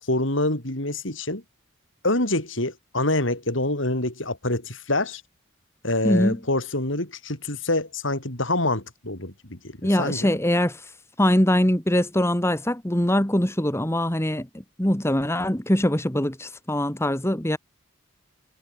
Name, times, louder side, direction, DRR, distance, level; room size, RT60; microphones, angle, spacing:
voice 1, 0.1-1.4 2.0-5.2 5.8-10.4, left 2 dB, 65° left, 5.7 m, -26 dB
voice 2, 6.0-6.4 9.8-17.6, left 1 dB, 15° left, 1.9 m, -23 dB
head